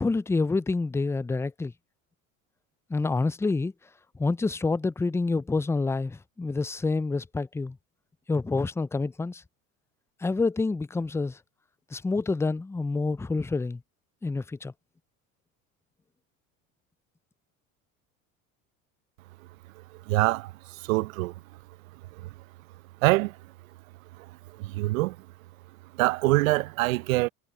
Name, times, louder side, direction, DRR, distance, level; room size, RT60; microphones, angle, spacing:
voice 1, 0.0-1.7 2.9-3.7 4.2-7.8 8.3-9.4 10.2-11.4 11.9-13.8 14.2-14.7, left 3 dB, 5° left, 0.4 m, -27 dB
voice 2, 20.1-20.5 20.9-21.3 23.0-23.3 24.6-25.2 26.0-27.3, right 20 dB, 80° right, 1.0 m, -24 dB
hypercardioid pair, 75°, 40 cm